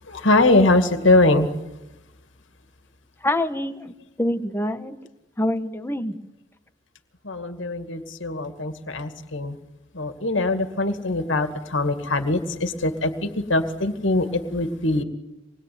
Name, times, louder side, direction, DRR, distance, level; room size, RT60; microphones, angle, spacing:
voice 1, 0.1-1.5 7.2-9.6 9.9-15.0, left 2 dB, 75° left, 7 dB, 2.3 m, -22 dB
voice 2, 3.2-5.0 5.4-6.2, left 1 dB, 10° left, 8 dB, 1.5 m, -26 dB
27.0 x 21.0 x 9.6 m, 0.97 s
head